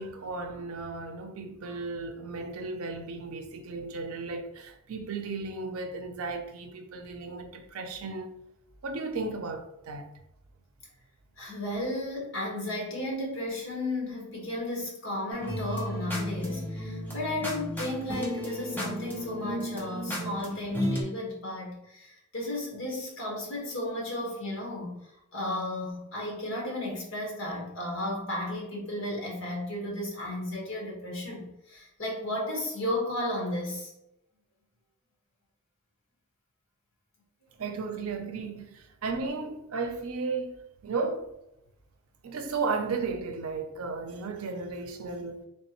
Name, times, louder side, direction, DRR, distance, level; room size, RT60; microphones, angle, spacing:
voice 1, 0.0-8.4 8.8-10.1 37.6-41.3 42.2-45.4, right 4 dB, 80° right, 0.5 m, -34 dB
voice 2, 11.4-22.1 22.3-24.9 25.3-33.9, left 1 dB, 60° left, 1.4 m, -34 dB
sound 1, 15.3-21.0, equal, 10° left, 0.7 m, -34 dB
3.4 x 3.2 x 2.9 m
head